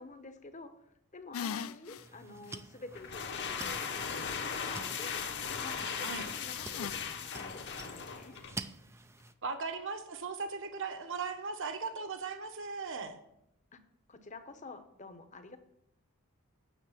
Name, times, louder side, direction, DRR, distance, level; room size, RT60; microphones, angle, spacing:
voice 1, 0.0-5.2 5.6-8.4 13.7-13.8 14.1-15.6, left 3 dB, 35° left, 9 dB, 1.0 m, -49 dB
sound 1, 1.3-2.0 2.5-2.6 6.3-6.9, left 7 dB, 65° left, 0.4 m, -39 dB
sound 2, 2.0-9.3, right 3 dB, 10° right, 0.4 m, -49 dB
sound 3, 2.9-8.6, left 6 dB, 50° left, 1.2 m, -38 dB
voice 2, 9.4-13.2, right 4 dB, 60° right, 7 dB, 1.3 m, -38 dB
9.4 x 6.7 x 7.4 m, 0.80 s
head